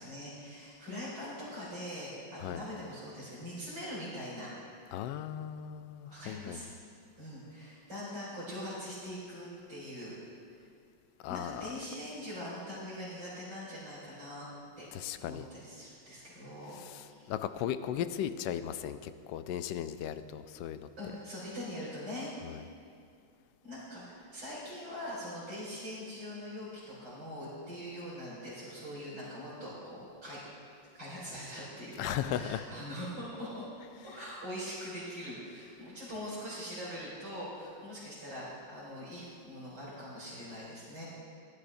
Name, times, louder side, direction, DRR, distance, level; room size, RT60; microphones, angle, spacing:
voice 1, 0.0-4.5 6.1-6.7 7.2-10.1 11.3-14.5 14.8-17.3 21.0-22.3 23.6-30.4 30.9-33.6 34.0-41.0, equal, 65° right, -9 dB, 3.9 m, -42 dB
voice 2, 4.9-6.6 11.2-11.7 14.9-15.4 16.8-20.9 22.4-22.6 32.0-32.6, left 10 dB, 75° left, 11 dB, 1.2 m, -37 dB
17.0 x 12.0 x 2.6 m, 2.3 s
omnidirectional pair, 2.0 m